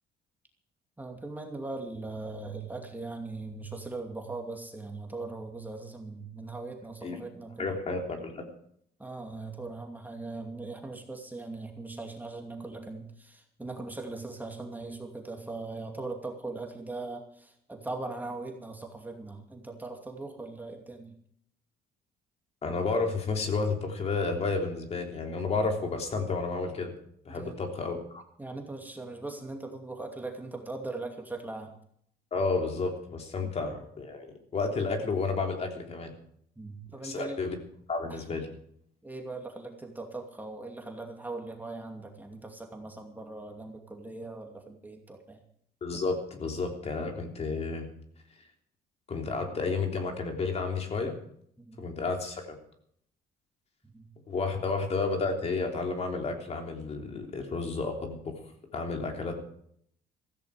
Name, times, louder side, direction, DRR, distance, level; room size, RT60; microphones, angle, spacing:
voice 1, 1.0-7.8 9.0-21.1 27.3-27.6 28.4-31.8 33.4-33.5 36.6-37.4 38.1-38.2 39.0-45.4 51.6-51.8 53.8-54.1, right 3 dB, 10° right, 2 dB, 2.5 m, -40 dB
voice 2, 7.6-8.4 22.6-26.9 27.2-28.2 32.3-36.1 37.0-37.6 37.9-38.5 45.8-47.9 49.1-51.2 51.8-52.6 54.3-58.4 58.7-59.3, left 4 dB, 40° left, 3 dB, 3.3 m, -31 dB
15.5 x 15.0 x 4.9 m, 0.67 s
cardioid pair, 110°, 17 cm